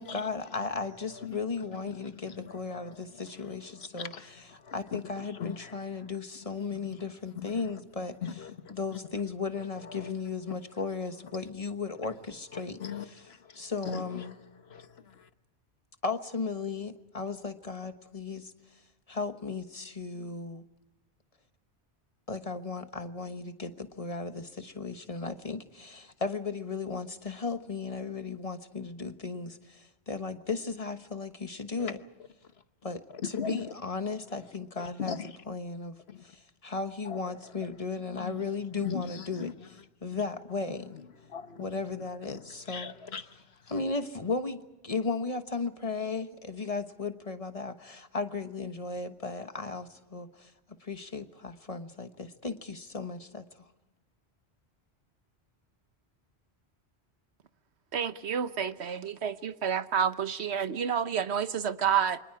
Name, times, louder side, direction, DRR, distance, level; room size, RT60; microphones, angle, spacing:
voice 1, 0.0-4.1 4.7-8.2 8.7-12.8 13.5-14.3 16.0-18.5 19.1-20.6 22.3-32.0 32.8-33.0 33.3-35.2 35.5-36.0 36.2-39.5 40.0-41.0 41.6-42.9 43.7-50.5 50.8-53.6, left 4 dB, 35° left, 1.3 m, -35 dB
voice 2, 0.6-6.2 6.5-7.7 8.2-9.2 9.5-10.2 10.5-10.7 11.2-11.4 12.0-12.1 12.5-15.3 31.8-31.9 32.4-32.6 33.1-33.8 34.4-34.5 34.8-35.4 36.1-36.4 37.0-37.7 38.2-40.3 40.6-43.9, left 7 dB, 70° left, 1.3 m, -42 dB
voice 3, 57.9-62.2, right 8 dB, 85° right, 1.2 m, -29 dB
29.0 x 25.0 x 4.8 m
omnidirectional pair, 1.1 m